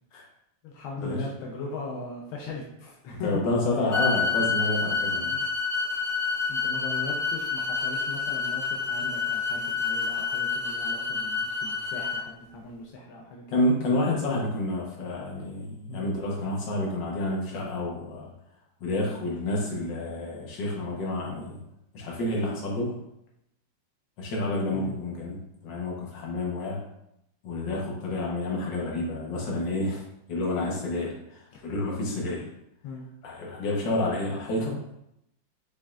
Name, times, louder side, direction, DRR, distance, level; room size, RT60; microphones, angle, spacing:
voice 1, 0.6-3.4 5.2-5.5 6.5-13.6 15.9-16.1 24.7-24.9 31.5-31.6 32.8-33.1, left 3 dB, 90° left, -1 dB, 1.5 m, -39 dB
voice 2, 3.2-5.3 13.5-18.3 18.8-21.6 21.9-23.0 24.2-25.4 25.6-26.8 27.4-30.0 30.3-32.5 33.2-34.8, left 2 dB, 65° left, -3 dB, 1.7 m, -29 dB
sound 1, 3.9-12.2, left 4 dB, 45° left, 0.7 m, -28 dB
5.4 x 3.5 x 2.4 m, 0.80 s
omnidirectional pair, 2.2 m